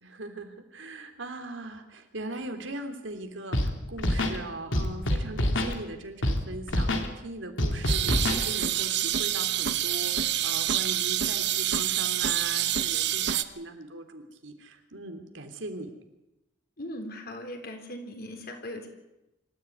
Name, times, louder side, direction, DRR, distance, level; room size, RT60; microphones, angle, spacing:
voice 1, 0.0-15.9, right 2 dB, 85° right, 6 dB, 3.2 m, -40 dB
Scratching (performance technique), 3.5-3.7 4.0-4.4 4.7-5.7 6.2-6.4 6.7-7.1 7.6-8.4, left 1 dB, 90° left, 3.0 m, -26 dB
sound 1, 7.9-13.4, right 11 dB, 60° right, 1.0 m, -27 dB
voice 2, 16.8-18.9, left 1 dB, 55° left, 4 dB, 3.9 m, -39 dB
25.5 x 14.0 x 9.4 m, 0.94 s
head